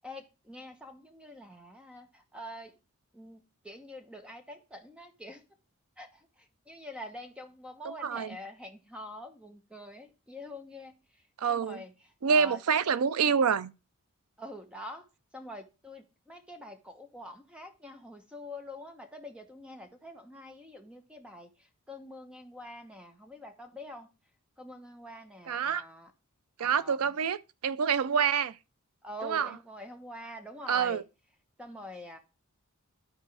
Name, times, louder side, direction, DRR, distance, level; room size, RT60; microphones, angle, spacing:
voice 1, 0.0-2.8 3.1-5.4 6.0-12.6 14.4-15.1 15.3-24.1 24.6-26.1 26.6-27.0 29.0-31.0 31.6-32.2, left 1 dB, 5° right, 1.0 m, -46 dB
voice 2, 7.8-8.4 11.4-11.8 12.2-13.7 25.5-25.8 26.6-28.6 29.2-29.5 30.7-31.0, right 6 dB, 75° right, 0.5 m, -27 dB
12.5 x 4.4 x 3.4 m
head